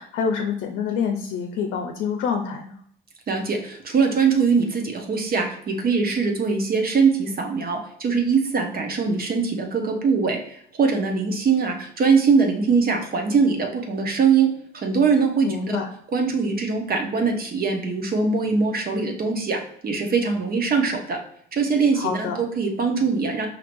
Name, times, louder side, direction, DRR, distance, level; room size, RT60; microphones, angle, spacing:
voice 1, 0.0-2.8 15.4-15.9 22.0-22.4, left 6 dB, 90° left, 4 dB, 0.5 m, -26 dB
voice 2, 3.3-15.8 16.1-21.2 21.5-23.5, right 5 dB, 50° right, 2 dB, 0.8 m, -22 dB
4.5 x 2.8 x 2.5 m, 0.67 s
cardioid pair, 90°, 20 cm